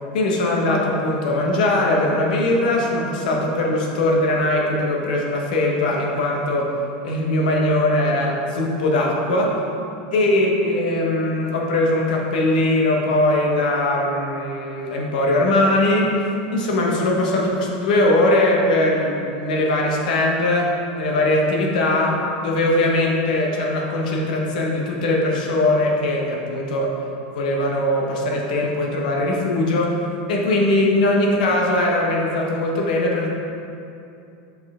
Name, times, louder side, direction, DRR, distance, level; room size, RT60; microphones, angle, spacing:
voice 1, 0.1-6.7 7.0-9.6 10.1-16.1 16.5-26.9 27.3-30.0 30.3-33.3, left 1 dB, 70° left, -1 dB, 1.2 m, -20 dB
7.2 x 4.4 x 3.7 m, 2.7 s
supercardioid pair, 180°, 5 cm